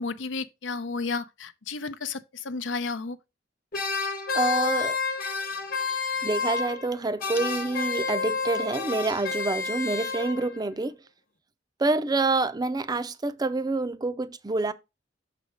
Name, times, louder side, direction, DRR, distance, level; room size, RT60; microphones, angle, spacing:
voice 1, 0.0-3.2, left 4 dB, 85° left, 0.7 m, -32 dB
sound 1, 3.7-6.9 7.2-10.6, left 4 dB, 50° left, 1.2 m, -30 dB
voice 2, 4.3-5.0 6.2-11.0 11.8-14.7, right 3 dB, 20° right, 0.4 m, -27 dB
6.3 x 4.2 x 4.9 m
head